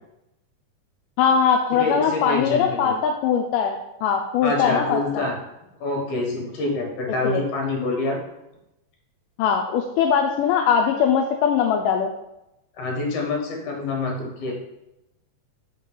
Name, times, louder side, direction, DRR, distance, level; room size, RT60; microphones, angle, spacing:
voice 1, 1.2-5.3 7.2-7.4 9.4-12.1, left 7 dB, 80° left, 2 dB, 2.1 m, -21 dB
voice 2, 1.7-2.9 4.4-5.3 5.8-8.2 12.8-14.5, left 2 dB, 65° left, 0 dB, 2.6 m, -26 dB
5.4 x 3.8 x 5.4 m, 0.90 s
omnidirectional pair, 3.9 m